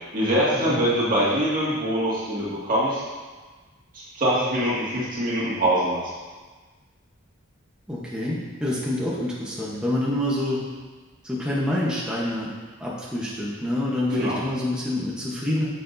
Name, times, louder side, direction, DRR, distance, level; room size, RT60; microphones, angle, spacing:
voice 1, 0.1-3.0 4.1-6.0 14.1-14.4, equal, 40° right, -8 dB, 2.1 m, -23 dB
voice 2, 7.9-10.6 11.2-12.5 12.8-15.7, left 1 dB, 5° right, -6 dB, 1.0 m, -27 dB
9.5 x 6.9 x 2.7 m, 1.4 s
head